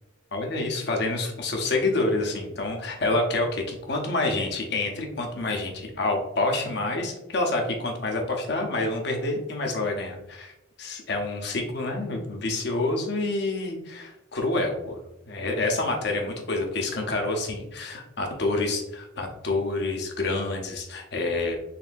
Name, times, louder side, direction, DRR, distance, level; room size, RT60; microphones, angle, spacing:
voice 1, 0.3-10.5 10.8-21.6, left 2 dB, 60° left, 2 dB, 0.8 m, -28 dB
4.1 x 3.3 x 2.6 m, 0.90 s
head